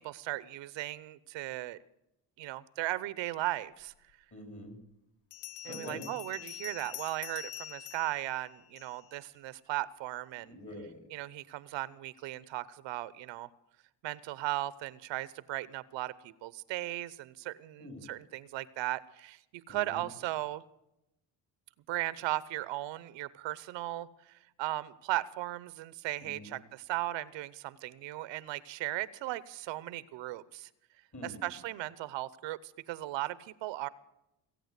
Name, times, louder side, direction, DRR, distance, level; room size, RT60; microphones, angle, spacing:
voice 1, 0.0-1.8 2.4-3.9 5.6-10.6 11.1-13.5 14.0-20.6 21.9-30.7 31.2-33.9, right 16 dB, 80° right, 19 dB, 0.8 m, -37 dB
Bell, 4.1-4.2 5.3-9.2, left 13 dB, 70° left, 0.7 m, -46 dB
voice 2, 4.3-4.8 5.6-6.1 10.4-11.1 17.8-18.1 19.7-20.0 26.2-26.6 31.1-31.5, left 1 dB, 40° left, 5 dB, 5.6 m, -45 dB
20.0 x 8.8 x 8.1 m, 0.88 s
cardioid pair, 90°, 44 cm